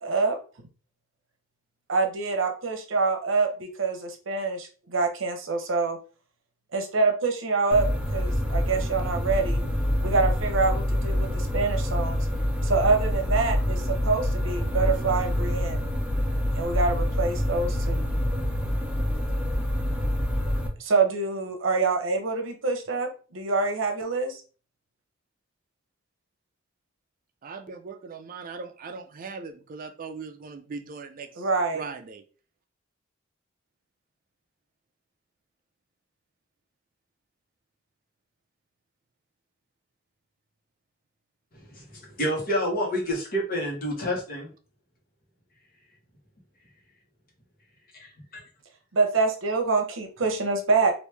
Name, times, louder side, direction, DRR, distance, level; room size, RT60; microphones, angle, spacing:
voice 1, 0.0-0.4 1.9-6.0 6.7-7.9 8.1-9.6 10.0-12.3 12.6-15.8 16.6-18.1 20.8-24.4 31.4-31.8 48.9-50.9, right 4 dB, 75° right, 4 dB, 0.8 m, -26 dB
sound 1, 7.7-20.7, left 1 dB, 5° right, 0.6 m, -26 dB
voice 2, 27.4-31.5 31.7-32.2, right 4 dB, 45° right, 6 dB, 0.4 m, -39 dB
voice 3, 41.7-44.5 47.9-48.4, equal, 50° left, -1 dB, 1.2 m, -29 dB
3.1 x 2.6 x 3.3 m, 0.37 s
head